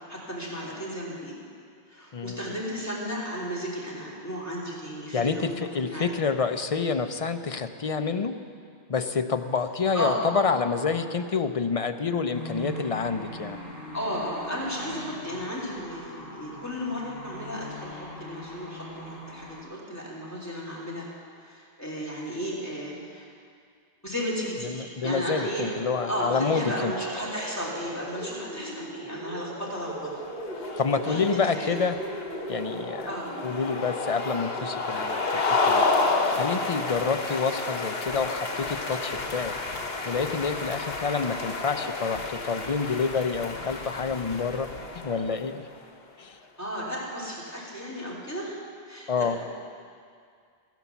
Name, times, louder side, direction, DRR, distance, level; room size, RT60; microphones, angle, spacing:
voice 1, 0.1-1.4 1.9-6.1 9.9-10.2 13.9-21.1 21.4-23.3 24.0-30.1 30.5-31.2 31.5-31.8 33.1-33.3 46.6-48.6 48.9-49.4, equal, 15° left, -5 dB, 3.1 m, -34 dB
voice 2, 2.1-2.4 5.1-8.4 8.9-13.6 24.6-26.9 30.8-32.0 32.5-33.1 33.4-35.8 36.3-39.5 40.0-44.7 44.9-45.6 46.2-46.4 49.1-49.4, left 5 dB, 40° left, 8 dB, 0.6 m, -28 dB
sound 1, 12.3-19.6, equal, 60° left, 4.2 m, -41 dB
sound 2, 24.9-34.9, right 1 dB, 90° right, 5.3 m, -39 dB
sound 3, 30.0-45.6, left 3 dB, 80° left, 1.5 m, -30 dB
15.0 x 10.5 x 7.1 m, 2.2 s
omnidirectional pair, 1.0 m